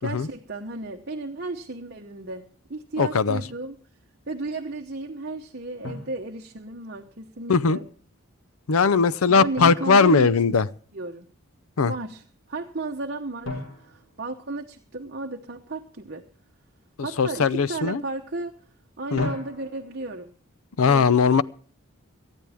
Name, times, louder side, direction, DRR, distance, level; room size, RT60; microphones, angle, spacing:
voice 1, 0.0-3.8 4.3-7.8 9.3-11.3 11.9-16.2 17.0-18.5 19.0-20.3 20.8-21.3, right 2 dB, 45° right, 2 dB, 1.0 m, -34 dB
voice 2, 3.0-3.4 7.5-7.8 8.7-10.7 11.8-11.9 17.2-18.0 19.1-19.3 20.8-21.4, left 5 dB, 80° left, 18 dB, 0.6 m, -19 dB
Drum, 3.4-3.7 5.8-7.0 9.6-11.0 13.4-15.2 19.2-20.1, left 2 dB, 60° left, 4.3 m, -38 dB
18.5 x 13.5 x 3.5 m, 0.43 s
head